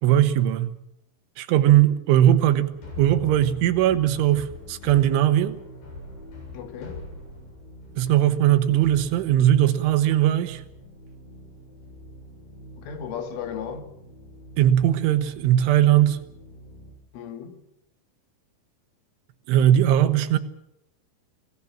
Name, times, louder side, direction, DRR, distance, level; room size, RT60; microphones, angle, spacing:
voice 1, 0.0-0.7 1.4-2.7 3.0-5.6 8.0-10.6 14.6-16.2 19.5-20.4, right 12 dB, 80° right, 3.7 m, -19 dB
sound 1, 2.3-16.9, left 2 dB, 60° left, 9.0 m, -44 dB
voice 2, 6.5-7.1 12.8-13.9 17.1-17.6, left 7 dB, 90° left, 4.8 m, -35 dB
28.0 x 17.5 x 7.4 m
omnidirectional pair, 5.5 m